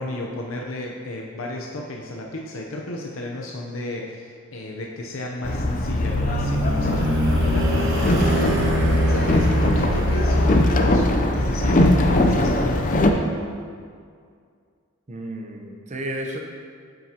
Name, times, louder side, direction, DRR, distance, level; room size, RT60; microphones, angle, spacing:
voice 1, 0.0-8.7 8.9-13.3, left 1 dB, 80° left, -1 dB, 0.7 m, -33 dB
Boat Water vehicle, 5.4-13.1, left 1 dB, 40° left, 0.5 m, -20 dB
sound 1, 5.5-11.3, equal, 65° right, 1.1 m, -25 dB
voice 2, 15.1-16.4, right 1 dB, 35° right, 1 dB, 0.9 m, -32 dB
9.3 x 7.8 x 2.9 m, 2.2 s
head